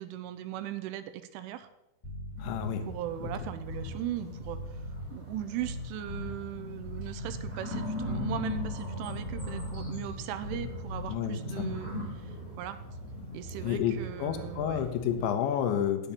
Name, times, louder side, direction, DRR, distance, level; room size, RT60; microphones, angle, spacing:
voice 1, 0.0-1.7 2.9-4.6 5.1-11.9 12.6-12.8 13.3-14.8 15.2-15.3, right 12 dB, 90° right, 11 dB, 3.3 m, -38 dB
sound 1, 2.0-11.6, left 2 dB, 10° left, 2.5 m, -40 dB
voice 2, 2.4-2.8 11.1-11.6 13.6-16.1, left 9 dB, 80° left, 7 dB, 3.1 m, -30 dB
sound 2, 2.4-15.1, left 1 dB, 20° right, 3.4 m, -39 dB
8.9 x 8.4 x 6.8 m, 0.90 s
omnidirectional pair, 5.5 m